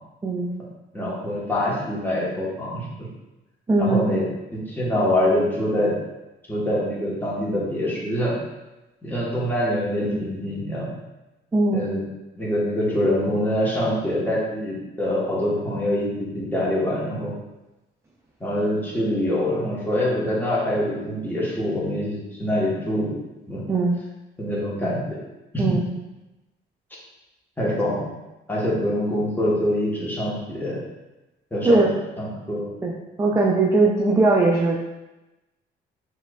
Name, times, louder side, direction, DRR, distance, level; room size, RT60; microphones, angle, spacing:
voice 1, 0.9-3.1 3.8-4.3 4.5-5.9 6.5-8.4 9.0-11.0 11.7-12.0 12.4-17.3 18.4-23.2 23.5-23.6 24.4-25.2 25.5-25.7 27.6-28.1 28.5-30.8 31.5-31.8 32.2-32.7, left 1 dB, 10° left, -6 dB, 1.1 m, -24 dB
voice 2, 3.7-4.1 10.1-10.2 11.5-11.9 23.7-24.0 25.6-25.9 31.6-31.9 32.8-34.8, right 2 dB, 15° right, -1 dB, 0.3 m, -20 dB
4.4 x 2.4 x 2.3 m, 1.0 s
cardioid pair, 90°, 20 cm